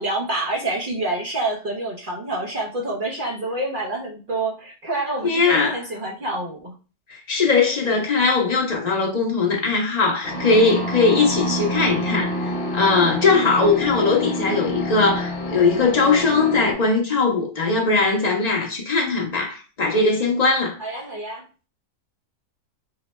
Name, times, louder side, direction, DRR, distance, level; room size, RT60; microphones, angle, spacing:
voice 1, 0.0-6.8 20.8-21.4, right 2 dB, 50° right, 0.6 m, -27 dB
voice 2, 5.2-5.8 7.1-20.8, left 4 dB, 90° left, 0.3 m, -20 dB
sound 1, 10.2-16.7, left 1 dB, 50° left, 0.8 m, -27 dB
3.9 x 2.1 x 4.0 m
omnidirectional pair, 1.8 m